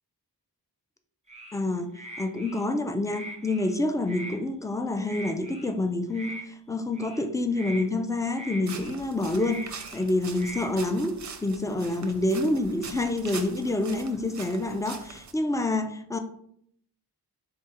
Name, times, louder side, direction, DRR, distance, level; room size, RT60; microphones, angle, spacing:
sound 1, 1.3-1.6 1.9-2.6 3.0-3.7 4.0-4.4 5.0-5.7 6.1-6.4 6.9-7.2 7.5-7.9 8.3-9.0 9.3-10.1 10.3-10.7, right 1 dB, 15° right, 0.8 m, -41 dB
voice 1, 1.5-1.9 2.2-16.2, left 2 dB, 10° left, 7 dB, 0.4 m, -28 dB
sound 2, 8.7-15.3, right 5 dB, 45° right, 0.5 m, -43 dB
3.8 x 2.3 x 4.2 m, 0.68 s
wide cardioid pair, 60°, 41 cm